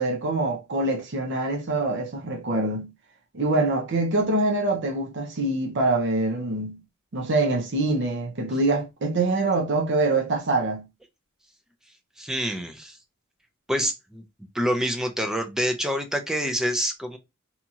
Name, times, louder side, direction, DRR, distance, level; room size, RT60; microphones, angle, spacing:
voice 1, 0.0-2.9 3.3-6.8 7.1-10.8, right 2 dB, 55° right, 0.6 m, -24 dB
voice 2, 12.2-13.0 13.7-14.2 14.5-17.2, equal, ahead, 0.4 m, -27 dB
2.8 x 2.7 x 2.3 m
head